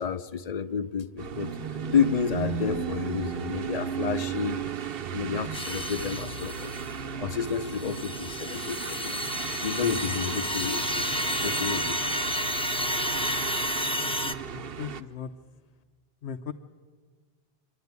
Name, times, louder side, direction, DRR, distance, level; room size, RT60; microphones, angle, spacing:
voice 1, 0.0-1.5 1.9-4.7 5.1-6.7 7.2-9.2 9.6-11.0 11.4-12.0, left 6 dB, 45° left, 13 dB, 0.7 m, -30 dB
sound 1, 1.2-15.0, right 7 dB, 65° right, 0.9 m, -35 dB
sound 2, 5.5-7.0 7.5-14.3, left 1 dB, 5° left, 0.5 m, -31 dB
voice 2, 14.0-15.3 16.2-16.5, left 7 dB, 80° left, 6 dB, 1.0 m, -39 dB
25.0 x 11.5 x 9.5 m, 1.5 s
omnidirectional pair, 1.1 m